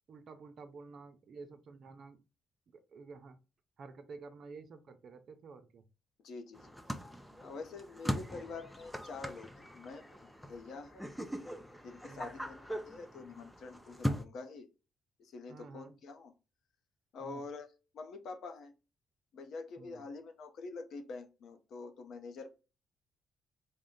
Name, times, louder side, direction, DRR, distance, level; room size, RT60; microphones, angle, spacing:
voice 1, 0.1-2.2 2.7-3.4 3.8-5.8 12.1-12.3 15.5-15.9 17.2-17.4 19.8-20.0, right 4 dB, 55° right, 8 dB, 0.5 m, -51 dB
voice 2, 6.2-6.7 7.4-11.1 11.8-14.7 15.2-16.3 17.1-18.7 19.3-22.5, left 4 dB, 70° left, 7 dB, 0.7 m, -46 dB
sound 1, 6.5-14.2, equal, ahead, 0.5 m, -41 dB
3.6 x 2.1 x 3.7 m, 0.31 s
cardioid pair, 90°, 0 cm